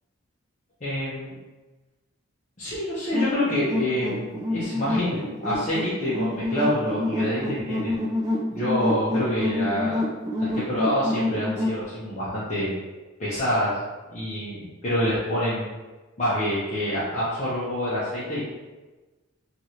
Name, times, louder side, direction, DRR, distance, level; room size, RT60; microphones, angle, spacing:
voice 1, 0.8-1.4 2.6-8.0 8.5-10.0 10.3-12.7 13.2-13.8 14.1-14.6 14.8-15.7 16.2-18.4, left 1 dB, 35° left, -10 dB, 0.6 m, -27 dB
sound 1, 3.1-11.8, left 1 dB, 15° right, 0.3 m, -27 dB
3.0 x 2.4 x 2.8 m, 1.2 s
head